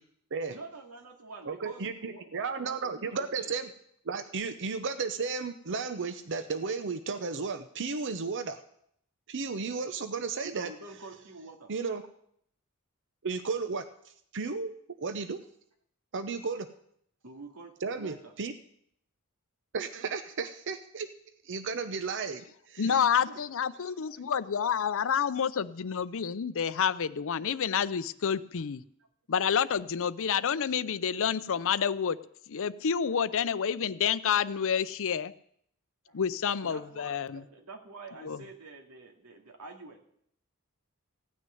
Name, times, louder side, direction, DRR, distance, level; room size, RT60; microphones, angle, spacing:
voice 1, 0.5-3.5 10.4-11.7 17.2-17.7 18.0-18.3 22.9-23.4 29.6-29.7 36.1-36.2 36.6-40.0, right 3 dB, 90° right, 2 dB, 2.4 m, -47 dB
voice 2, 1.5-3.7 4.1-8.6 9.3-10.7 11.7-12.0 13.2-13.8 14.3-14.7 15.0-15.4 16.1-16.7 17.8-18.5 19.7-21.1 21.4-23.0, right 4 dB, 55° right, 10 dB, 0.7 m, -34 dB
voice 3, 22.8-28.8 29.3-32.2 32.5-35.3 36.1-37.4 38.2-38.4, left 7 dB, 65° left, 16 dB, 0.5 m, -29 dB
16.0 x 6.3 x 9.2 m, 0.70 s
head